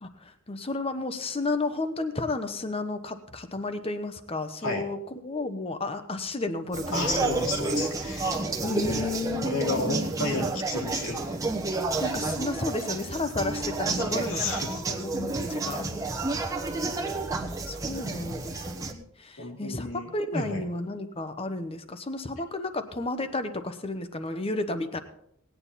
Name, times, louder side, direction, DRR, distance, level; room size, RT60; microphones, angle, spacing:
voice 1, 0.0-7.4 8.6-9.5 12.0-15.9 17.4-25.0, left 2 dB, 25° left, 9 dB, 1.0 m, -32 dB
sound 1, 6.7-18.9, right 3 dB, 15° right, 1.1 m, -30 dB
voice 2, 6.9-8.7 9.4-11.4 14.0-14.8 19.4-20.6, left 2 dB, 70° left, 1 dB, 2.6 m, -32 dB
18.5 x 9.3 x 4.2 m, 0.74 s
head